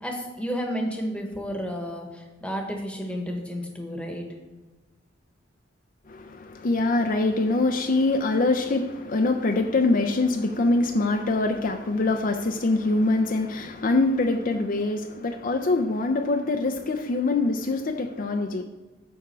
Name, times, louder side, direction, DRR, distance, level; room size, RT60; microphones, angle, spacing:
voice 1, 0.0-4.3, equal, 5° left, 1.2 m, -31 dB
voice 2, 6.1-18.6, left 2 dB, 45° left, 0.5 m, -24 dB
9.4 x 3.6 x 6.8 m
head